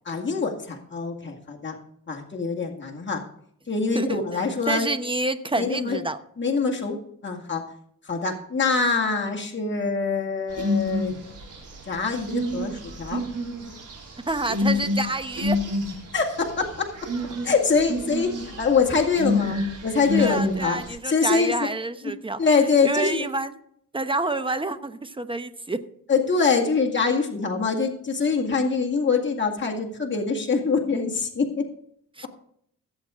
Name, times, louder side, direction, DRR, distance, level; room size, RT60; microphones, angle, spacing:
voice 1, 0.1-1.8 2.1-3.2 3.7-4.9 5.6-6.0 6.4-7.6 8.0-11.1 11.9-13.2 16.1-16.9 17.4-20.8 21.0-21.5 22.0-22.1 22.4-23.3 26.1-31.7, left 4 dB, 35° left, 0 dB, 2.0 m, -24 dB
voice 2, 4.7-6.2 14.3-15.6 20.2-22.4 22.8-23.6 23.9-25.8 32.2-32.3, right 2 dB, 15° right, 10 dB, 1.0 m, -28 dB
sound 1, 10.5-20.9, left 2 dB, 65° right, 3.7 m, -29 dB
17.0 x 8.0 x 3.7 m, 0.68 s
cardioid pair, 75°, 33 cm